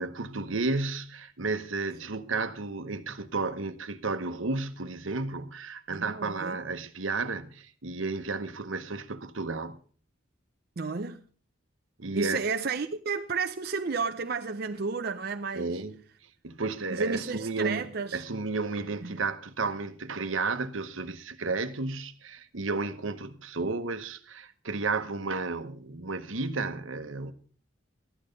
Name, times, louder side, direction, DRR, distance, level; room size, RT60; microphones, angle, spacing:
voice 1, 0.0-9.8 12.0-12.4 15.5-16.0 16.4-27.3, right 3 dB, 80° right, 1.1 m, -32 dB
voice 2, 5.9-6.6 10.8-11.2 12.1-15.8 16.9-18.2 19.0-19.2, right 4 dB, 50° right, 0.6 m, -32 dB
13.5 x 11.0 x 5.2 m
head